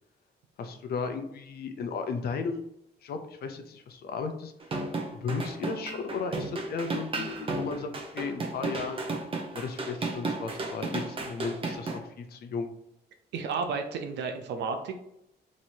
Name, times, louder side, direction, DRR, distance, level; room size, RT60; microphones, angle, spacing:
voice 1, 0.6-2.6 3.0-4.5 5.1-9.0 9.5-12.7, left 5 dB, 65° left, 7 dB, 0.6 m, -35 dB
sound 1, 4.6-12.0, right 3 dB, 30° right, 0.6 m, -33 dB
voice 2, 13.3-15.0, right 5 dB, 90° right, 5 dB, 0.5 m, -32 dB
3.1 x 2.8 x 4.3 m, 0.78 s
cardioid pair, 135°, 18 cm